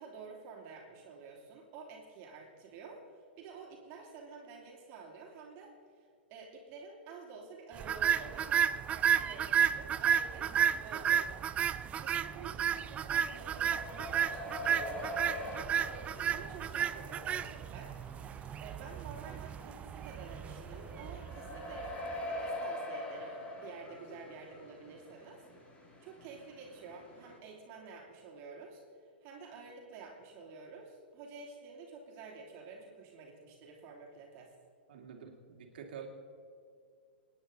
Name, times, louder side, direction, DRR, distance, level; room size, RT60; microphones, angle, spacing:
voice 1, 0.0-11.3 12.0-16.0 16.3-17.9 18.6-25.4 26.0-34.5, right 4 dB, 40° right, -1 dB, 3.0 m, -50 dB
sound 1, 7.8-22.1, right 8 dB, 20° right, 0.4 m, -32 dB
sound 2, 13.2-27.4, left 1 dB, 20° left, 2.5 m, -44 dB
voice 2, 34.9-36.1, right 7 dB, 60° right, 3 dB, 2.5 m, -47 dB
27.0 x 9.9 x 4.0 m, 2.3 s
figure-of-eight pair, 110°, 6 cm